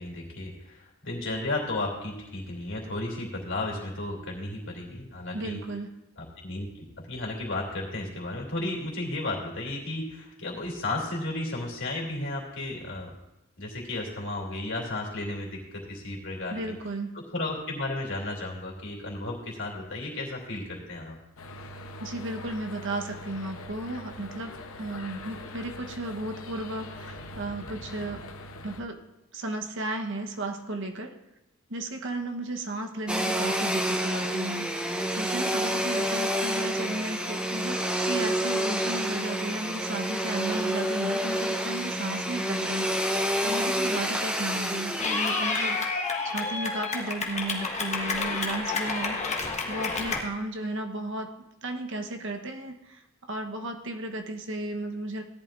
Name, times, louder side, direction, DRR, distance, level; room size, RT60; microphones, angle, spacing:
voice 1, 0.0-5.6 6.2-13.1 13.6-16.6 17.1-21.2, left 2 dB, 65° left, -2 dB, 3.1 m, -34 dB
voice 2, 5.3-5.9 16.5-17.2 22.0-24.5 24.8-28.2 28.6-29.0 29.3-31.2 31.7-49.2 49.7-51.3 51.6-55.2, right 2 dB, 65° right, 4 dB, 1.1 m, -34 dB
sound 1, 21.4-28.8, left 1 dB, 80° left, 0.9 m, -42 dB
Domestic sounds home sounds, 33.1-45.9, equal, 5° right, 0.9 m, -28 dB
Clapping / Cheering, 45.0-50.2, left 4 dB, 35° left, 1.4 m, -29 dB
17.0 x 11.0 x 2.6 m, 0.91 s
head